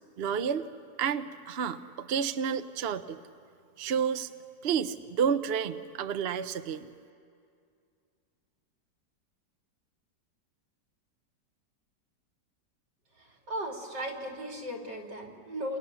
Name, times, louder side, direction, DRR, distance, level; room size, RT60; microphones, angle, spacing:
voice 1, 0.2-0.7 1.0-3.2 3.8-4.3 4.6-6.9, right 7 dB, 50° right, 9 dB, 0.7 m, -30 dB
voice 2, 13.2-15.8, equal, 75° right, 1 dB, 3.8 m, -37 dB
28.5 x 27.5 x 6.9 m, 2.3 s
omnidirectional pair, 1.9 m